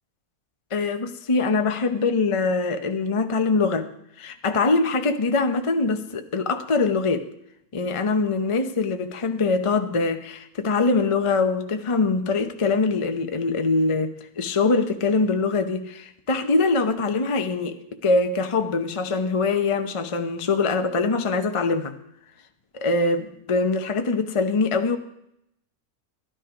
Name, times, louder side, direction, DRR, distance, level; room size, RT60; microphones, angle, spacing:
voice 1, 0.7-3.9 4.2-7.3 7.7-17.7 18.0-21.9 22.7-25.0, left 3 dB, 30° left, 7 dB, 0.6 m, -23 dB
13.0 x 11.5 x 5.0 m, 0.78 s
omnidirectional pair, 1.6 m